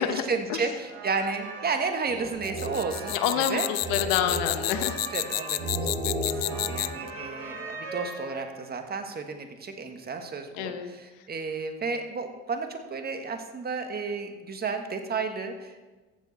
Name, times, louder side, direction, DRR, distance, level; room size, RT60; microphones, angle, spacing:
voice 1, 0.0-3.7 4.0-4.1 5.1-6.2 6.4-15.8, right 4 dB, 35° right, 6 dB, 1.6 m, -32 dB
sound 1, 0.9-8.7, right 2 dB, 50° right, 3.6 m, -35 dB
sound 2, 2.4-7.1, left 19 dB, 60° left, 0.5 m, -30 dB
voice 2, 3.1-5.0 10.6-10.9, left 10 dB, 80° left, 8 dB, 1.0 m, -28 dB
14.5 x 7.3 x 4.2 m, 1.2 s
supercardioid pair, 80°, 29 cm